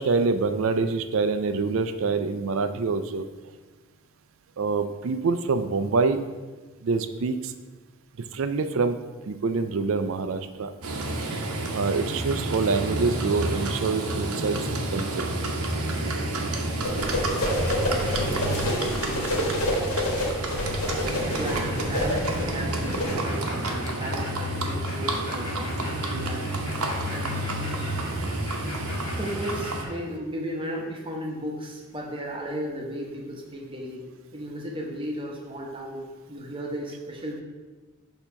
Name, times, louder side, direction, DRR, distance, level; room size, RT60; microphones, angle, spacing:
voice 1, 0.0-3.3 4.6-6.2 6.8-7.5 8.3-9.0 9.3-10.7 11.7-15.5, right 4 dB, 65° right, 10 dB, 0.4 m, -26 dB
Livestock farm animals working animals, 10.8-29.8, right 1 dB, 85° right, 0.9 m, -29 dB
sound 1, 16.8-23.1, left 1 dB, 85° left, 1.4 m, -28 dB
voice 2, 21.3-26.5 27.1-27.4 29.2-34.1 34.3-37.4, equal, 25° right, -1 dB, 0.9 m, -35 dB
sound 2, 22.8-29.9, left 2 dB, 65° left, 1.4 m, -40 dB
6.7 x 2.9 x 5.6 m, 1.3 s
head